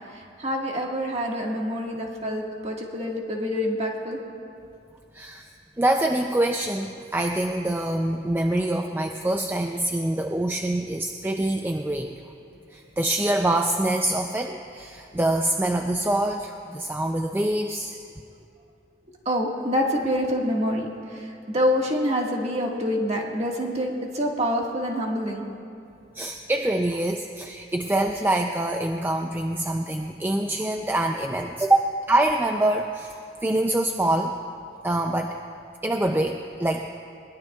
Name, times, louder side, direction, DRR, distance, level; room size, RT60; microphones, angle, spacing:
voice 1, 0.1-4.2 19.2-25.4, equal, 35° right, -1 dB, 1.7 m, -26 dB
voice 2, 5.1-5.5 5.8-12.2 12.7-18.0 26.1-33.1 33.4-34.3 34.8-35.3 35.8-36.9, right 1 dB, 10° right, 4 dB, 0.4 m, -25 dB
21.5 x 19.5 x 2.3 m, 2.5 s
head